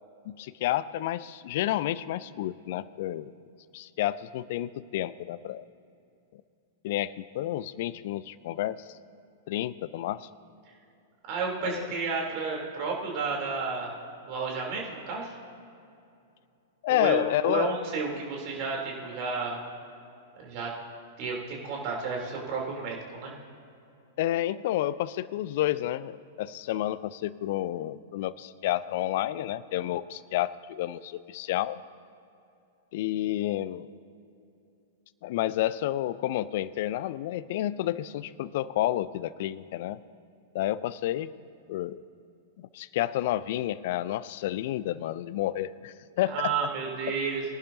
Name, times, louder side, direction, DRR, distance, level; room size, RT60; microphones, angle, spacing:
voice 1, 0.3-3.3 3.7-5.6 6.8-8.9 9.5-10.3 11.6-11.9 16.8-17.7 24.2-31.8 32.9-33.9 35.2-40.0 40.5-41.3 41.7-42.0 42.6-46.5, left 13 dB, 55° left, 18 dB, 0.4 m, -30 dB
voice 2, 11.3-13.9 14.2-15.3 16.9-19.6 20.4-20.7 21.2-23.3 46.3-47.4, right 4 dB, 45° right, -1 dB, 3.1 m, -32 dB
22.0 x 11.0 x 2.7 m, 2.6 s
figure-of-eight pair, 100°, 0 cm